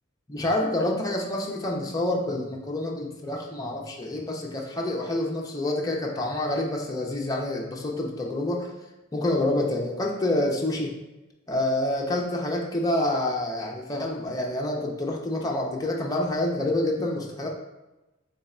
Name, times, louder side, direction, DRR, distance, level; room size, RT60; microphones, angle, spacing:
voice 1, 0.3-8.7 9.1-10.9 11.5-17.5, left 1 dB, 20° left, -1 dB, 0.6 m, -27 dB
3.5 x 3.2 x 4.2 m, 1.0 s
head